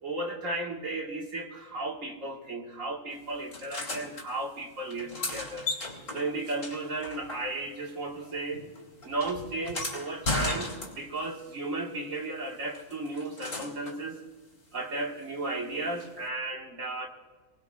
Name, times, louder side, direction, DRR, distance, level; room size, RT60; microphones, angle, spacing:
voice 1, 0.0-5.7 6.1-8.6 9.0-14.2 14.7-17.1, right 2 dB, 80° right, 0 dB, 2.3 m, -34 dB
sound 1, 3.5-4.3 4.9-7.8 8.1-11.3 12.7-14.0 16.0-16.1, left 2 dB, 80° left, 3.2 m, -36 dB
24.5 x 19.5 x 2.5 m, 1.3 s
omnidirectional pair, 1.3 m